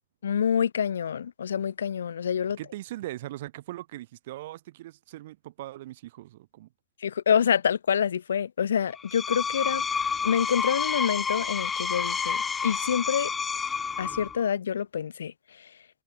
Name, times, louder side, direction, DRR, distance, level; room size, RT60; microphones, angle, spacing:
voice 1, 0.2-2.6 7.0-9.8 10.2-13.3 14.0-15.7, left 8 dB, 65° left, 0.7 m, -27 dB
voice 2, 2.6-6.7, right 15 dB, 55° right, 4.9 m, -40 dB
Screech, 9.0-14.4, left 6 dB, 15° left, 0.8 m, -29 dB
figure-of-eight pair, 90°, 0 cm